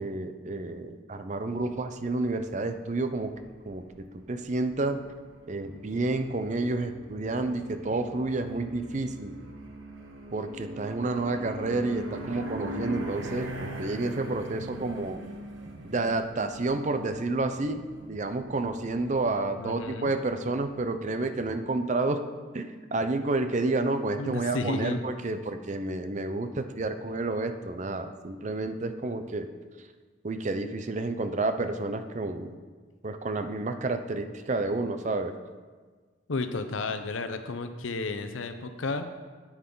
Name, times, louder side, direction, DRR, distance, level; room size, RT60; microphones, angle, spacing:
voice 1, 0.0-3.3 3.7-5.0 5.5-9.3 10.3-15.2 15.8-17.8 18.1-22.2 22.5-29.5 30.2-32.6 33.0-35.3, right 2 dB, 35° right, 9 dB, 0.5 m, -30 dB
sound 1, 1.5-20.9, right 1 dB, 85° right, 1.1 m, -42 dB
voice 2, 19.6-20.1 24.2-25.0 36.3-39.1, left 3 dB, 85° left, 8 dB, 0.7 m, -32 dB
9.5 x 8.7 x 3.9 m, 1.5 s
head